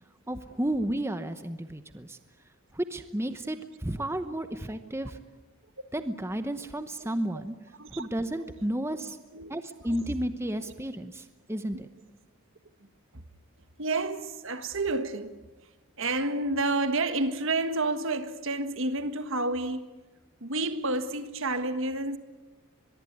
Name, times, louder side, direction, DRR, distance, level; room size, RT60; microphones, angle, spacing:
voice 1, 0.3-2.2 2.7-5.2 5.9-7.5 7.9-9.2 9.5-11.9, right 1 dB, 10° right, 0.9 m, -32 dB
voice 2, 13.8-15.4 16.0-19.9 20.4-22.2, right 2 dB, 60° right, 1.6 m, -29 dB
23.5 x 22.5 x 9.4 m
head